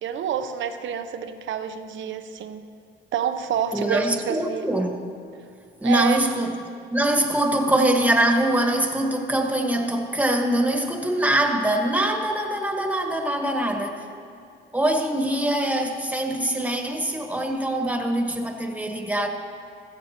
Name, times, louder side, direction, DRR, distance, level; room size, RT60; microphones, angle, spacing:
voice 1, 0.0-2.7 3.1-4.7 5.8-6.2, right 8 dB, 70° right, 9 dB, 0.9 m, -28 dB
voice 2, 3.7-4.9 5.8-6.5 6.9-14.0 14.7-19.3, right 1 dB, 5° right, 3 dB, 1.5 m, -23 dB
15.0 x 14.5 x 3.0 m, 2.5 s
cardioid pair, 90°, 20 cm